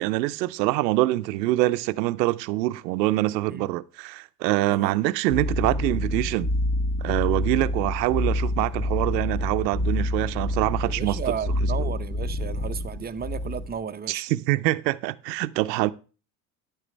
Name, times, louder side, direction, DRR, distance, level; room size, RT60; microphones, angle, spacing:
voice 1, 0.0-6.5 7.0-11.2 11.8-11.9 14.1-15.9, right 17 dB, 85° right, 0.7 m, -25 dB
sound 1, 5.3-13.8, left 1 dB, 25° left, 1.9 m, -27 dB
voice 2, 10.8-14.2, right 7 dB, 20° right, 0.8 m, -34 dB
10.5 x 8.8 x 3.2 m
hypercardioid pair, 85°, 49 cm